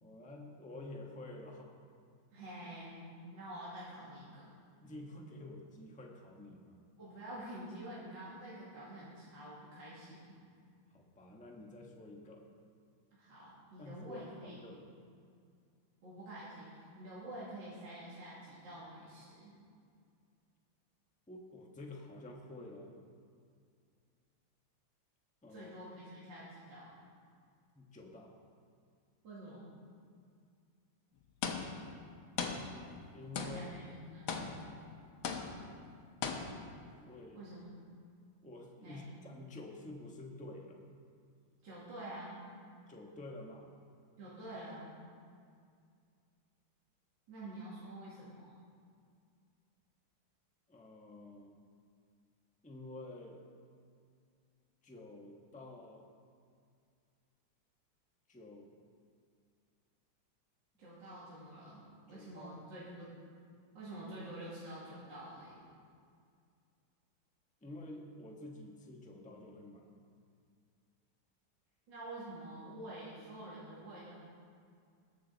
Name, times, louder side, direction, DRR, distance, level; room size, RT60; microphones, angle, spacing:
voice 1, 0.0-1.7 4.8-6.8 10.9-12.4 13.8-14.8 21.3-22.9 25.4-25.7 27.7-28.3 33.1-33.7 37.0-37.4 38.4-40.8 42.9-43.7 47.4-47.5 50.7-51.5 52.6-53.4 54.8-56.0 58.3-58.7 62.1-62.6 67.6-69.8, left 1 dB, 5° left, 0 dB, 0.8 m, -49 dB
voice 2, 2.3-4.5 7.0-10.4 13.1-14.7 16.0-19.5 25.5-26.9 29.2-29.7 33.3-34.4 37.3-37.8 38.8-39.0 41.6-42.5 44.2-44.9 47.3-48.5 60.8-63.1 63.7-65.6 71.9-74.1, right 1 dB, 60° right, -9 dB, 3.0 m, -48 dB
sound 1, 31.4-32.0 32.4-33.1 33.4-33.9 34.3-34.9 35.2-35.8 36.2-36.8, left 5 dB, 75° left, 1.7 m, -39 dB
20.0 x 7.5 x 4.0 m, 2.3 s
omnidirectional pair, 2.3 m